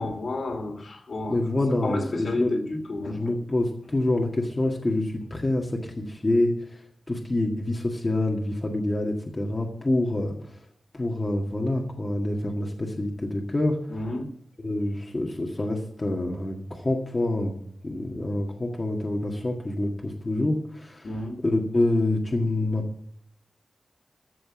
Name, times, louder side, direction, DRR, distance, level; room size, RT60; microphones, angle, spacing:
voice 1, 0.0-1.4 1.8-3.3 13.9-14.3 21.0-21.4, left 2 dB, 55° left, 4 dB, 2.6 m, -31 dB
voice 2, 1.3-2.5 3.0-6.8 7.1-10.3 10.9-13.8 14.6-17.6 17.8-21.1 21.4-23.1, left 1 dB, 25° left, 0 dB, 1.8 m, -26 dB
14.5 x 6.2 x 7.4 m, 0.69 s
wide cardioid pair, 115°, 0 cm